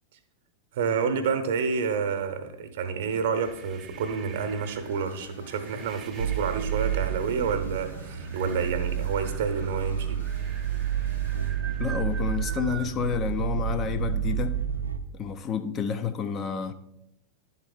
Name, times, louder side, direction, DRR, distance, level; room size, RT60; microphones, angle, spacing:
voice 1, 0.7-10.2, right 6 dB, 55° right, 0.9 m, -29 dB
sound 1, 3.2-12.9, right 7 dB, 25° right, 0.5 m, -46 dB
sound 2, 4.6-11.5, left 2 dB, 85° left, 2.4 m, -50 dB
sound 3, 6.2-15.0, right 9 dB, 75° right, 0.4 m, -30 dB
voice 2, 11.8-14.5 15.2-16.7, left 7 dB, 30° left, 0.5 m, -29 dB
11.0 x 4.0 x 3.9 m
figure-of-eight pair, 90°, 0 cm